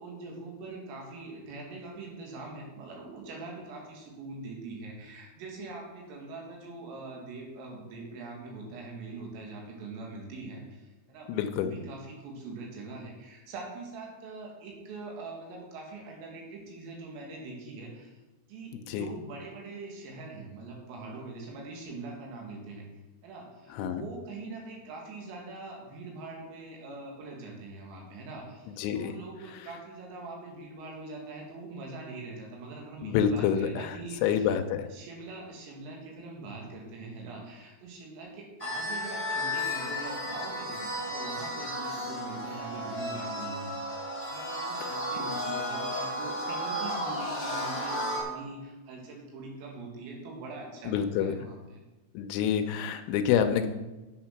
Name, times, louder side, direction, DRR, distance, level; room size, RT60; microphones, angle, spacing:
voice 1, 0.0-18.2 18.5-22.9 23.2-34.5 34.9-43.7 44.3-51.8 52.7-52.8, right 3 dB, 80° right, 0 dB, 4.6 m, -43 dB
voice 2, 11.3-11.7 18.7-19.1 23.7-24.0 28.8-29.2 33.0-34.9 44.8-44.9 50.9-51.4 52.1-53.7, left 8 dB, 80° left, 7 dB, 2.8 m, -28 dB
sound 1, 38.6-48.2, left 1 dB, 5° left, 1.6 m, -33 dB
9.7 x 7.7 x 5.8 m, 1.1 s
omnidirectional pair, 6.0 m